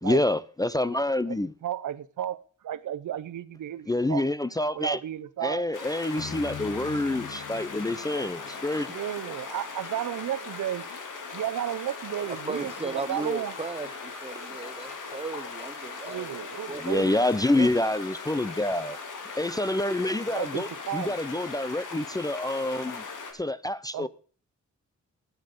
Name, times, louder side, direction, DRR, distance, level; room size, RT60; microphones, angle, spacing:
voice 1, 0.0-1.5 3.9-5.0 5.4-8.9 16.8-19.0 19.4-23.0 23.3-24.1, left 1 dB, 10° left, 0.4 m, -27 dB
voice 2, 1.6-4.3 4.7-5.6 8.9-10.8 11.3-13.5 16.0-17.1 20.3-21.2 23.9-24.1, right 11 dB, 85° right, 0.8 m, -33 dB
sound 1, 5.7-23.3, left 4 dB, 90° left, 2.5 m, -39 dB
sound 2, 6.2-9.7, left 8 dB, 60° left, 1.0 m, -43 dB
voice 3, 12.3-16.3 16.7-17.1 17.5-17.8, right 3 dB, 20° right, 0.9 m, -36 dB
13.0 x 9.6 x 5.2 m
cardioid pair, 95°, 30 cm